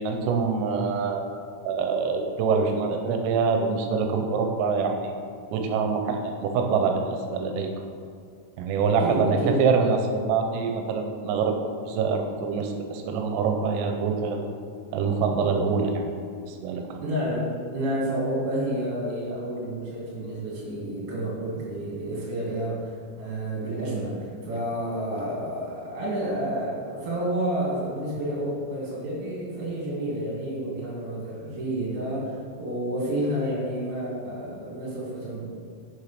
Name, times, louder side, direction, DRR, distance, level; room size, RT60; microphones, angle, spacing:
voice 1, 0.0-5.2 5.5-7.7 8.6-11.6 11.9-14.5 14.9-16.1 16.5-17.0, right 5 dB, 85° right, 4 dB, 3.4 m, -25 dB
voice 2, 9.0-9.6 17.0-35.5, right 1 dB, 65° right, -7 dB, 4.8 m, -30 dB
8.5 x 6.4 x 5.9 m, 2.3 s
omnidirectional pair, 5.8 m